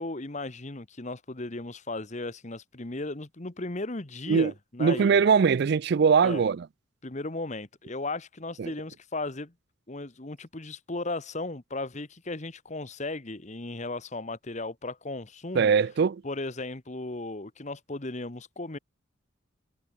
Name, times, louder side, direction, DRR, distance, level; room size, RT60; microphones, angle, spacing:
voice 1, 0.0-5.2 6.2-6.5 7.0-9.5 9.9-15.7 16.2-18.8, left 2 dB, 35° left, 1.2 m, -36 dB
voice 2, 4.8-6.6 8.6-8.7 15.5-16.2, right 6 dB, 55° right, 0.4 m, -21 dB
head